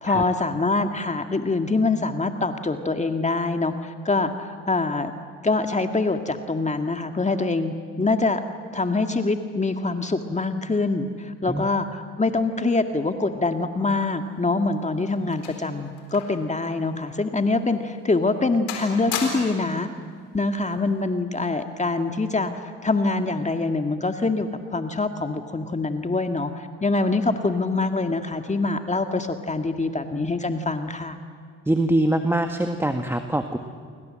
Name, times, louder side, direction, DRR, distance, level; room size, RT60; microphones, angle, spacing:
voice 1, 0.0-5.1 5.4-8.4 8.7-19.9 20.3-22.5 22.8-31.2, left 3 dB, 20° left, 6 dB, 1.9 m, -24 dB
sound 1, 14.4-16.5 16.8-17.0 17.6-17.7 18.2-18.4 18.7-19.7 20.7-21.0, left 7 dB, 85° left, 4.1 m, -35 dB
voice 2, 31.6-33.6, right 1 dB, 5° right, 6 dB, 1.7 m, -23 dB
29.0 x 24.0 x 7.7 m, 2.1 s
hypercardioid pair, 60°, 35 cm